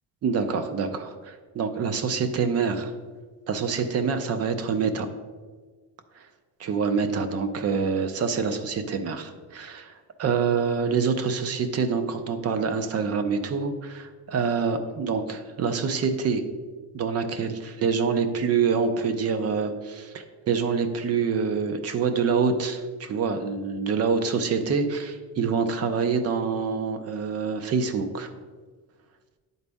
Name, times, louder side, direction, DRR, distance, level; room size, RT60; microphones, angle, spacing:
voice 1, 0.2-2.9 3.5-5.1 6.2-6.3 6.6-9.9 10.2-16.4 16.9-28.3, right 5 dB, 40° right, 9 dB, 0.6 m, -26 dB
10.0 x 4.0 x 3.5 m, 1.5 s
cardioid pair, 150°, 36 cm